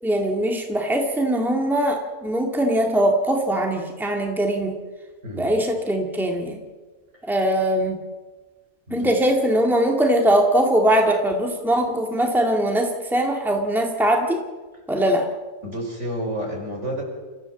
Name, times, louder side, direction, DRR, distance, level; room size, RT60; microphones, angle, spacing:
voice 1, 0.0-4.8 5.3-6.6 7.2-8.0 8.9-14.4 14.9-15.3, right 1 dB, ahead, 2 dB, 2.3 m, -21 dB
voice 2, 5.2-5.5 7.2-7.3 8.9-9.1 15.6-17.0, equal, 60° right, 0 dB, 6.0 m, -30 dB
29.0 x 15.0 x 7.4 m, 1.3 s
omnidirectional pair, 1.4 m